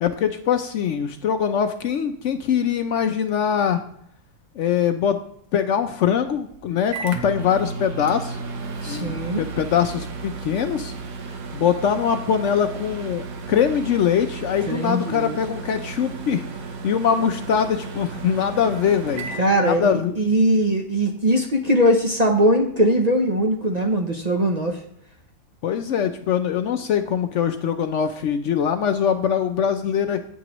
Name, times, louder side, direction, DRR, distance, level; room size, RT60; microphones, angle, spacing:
voice 1, 0.0-3.8 4.6-5.2 5.5-8.4 8.9-10.9 11.5-16.4 16.8-19.3 19.6-20.2 25.6-30.2, left 8 dB, 65° left, 8 dB, 0.8 m, -22 dB
Microwave oven, 6.2-20.3, right 4 dB, 75° right, 1.4 m, -34 dB
voice 2, 8.8-9.4 14.7-15.4 19.4-24.8, equal, 35° right, 2 dB, 0.7 m, -20 dB
8.9 x 8.4 x 3.0 m, 0.71 s
omnidirectional pair, 1.5 m